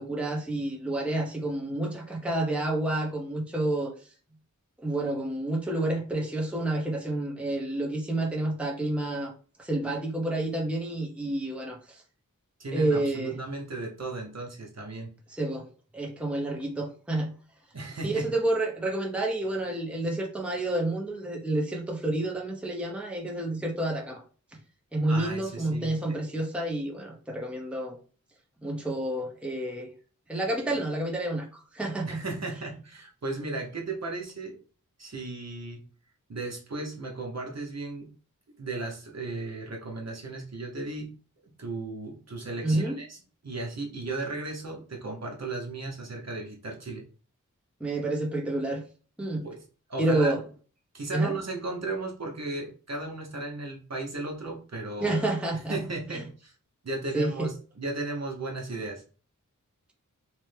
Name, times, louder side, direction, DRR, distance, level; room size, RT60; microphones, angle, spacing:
voice 1, 0.0-3.9 4.8-9.3 9.6-12.0 12.7-13.4 15.3-15.7 15.9-17.3 18.0-24.2 24.5-24.6 24.9-28.0 28.6-29.9 30.3-32.2 42.6-43.0 47.8-48.8 49.2-49.5 50.0-50.4 51.1-51.3 55.0-55.8 56.1-56.2 57.1-57.5, right 1 dB, 5° right, 1 dB, 0.7 m, -29 dB
voice 2, 12.6-15.1 17.7-18.3 25.1-26.2 32.0-34.6 35.0-35.8 36.3-38.1 38.6-41.1 41.6-43.2 43.4-47.0 49.4-49.6 49.9-50.4 50.9-55.2 55.5-56.5 56.8-59.0, right 2 dB, 55° right, 0 dB, 0.8 m, -35 dB
3.1 x 2.1 x 3.2 m, 0.39 s
wide cardioid pair, 65°, 32 cm